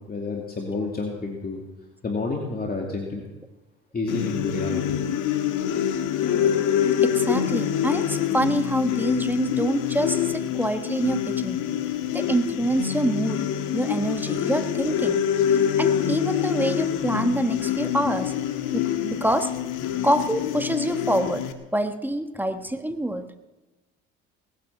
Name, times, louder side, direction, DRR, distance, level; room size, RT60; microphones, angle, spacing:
voice 1, 0.1-1.6 2.0-3.2 3.9-5.0, left 3 dB, 30° left, 0 dB, 2.7 m, -29 dB
sound 1, 4.1-21.5, left 9 dB, 70° left, 1.7 m, -25 dB
voice 2, 7.0-11.6 12.1-13.4 13.7-15.2 15.8-18.3 18.7-19.5 20.0-21.4 21.7-23.2, right 1 dB, 5° right, 8 dB, 1.4 m, -26 dB
19.5 x 9.2 x 7.5 m, 1.1 s
supercardioid pair, 75°, 32 cm